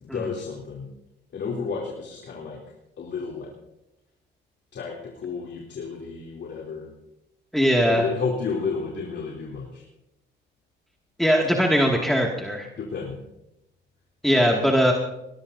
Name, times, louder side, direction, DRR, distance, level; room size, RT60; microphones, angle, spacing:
voice 1, 0.1-0.9 1.3-2.6 3.0-3.5 4.7-6.9 7.8-9.8 12.8-13.2 14.3-14.6, left 5 dB, 60° left, -2 dB, 3.4 m, -31 dB
voice 2, 7.5-8.0 11.2-12.7 14.2-14.9, equal, ahead, -1 dB, 2.3 m, -20 dB
21.5 x 19.0 x 2.8 m, 0.86 s
cardioid pair, 90°, 20 cm